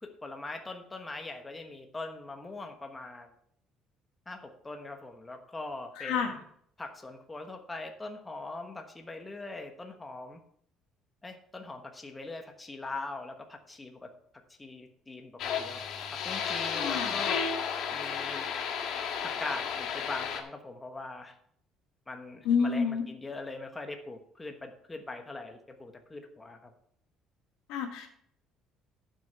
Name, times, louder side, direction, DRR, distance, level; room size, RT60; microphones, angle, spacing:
voice 1, 0.0-3.3 4.3-6.4 6.8-10.4 11.2-14.1 14.6-15.8 16.1-17.5 17.9-18.5 19.2-21.3 22.1-26.7, left 2 dB, 15° left, 5 dB, 1.2 m, -41 dB
voice 2, 6.0-6.4 16.7-17.2 22.5-23.0 27.7-28.1, left 6 dB, 90° left, 3 dB, 1.7 m, -29 dB
sound 1, 15.4-20.4, left 7 dB, 60° left, 1.4 m, -33 dB
11.5 x 6.6 x 4.6 m, 0.66 s
cardioid pair, 150°, 0 cm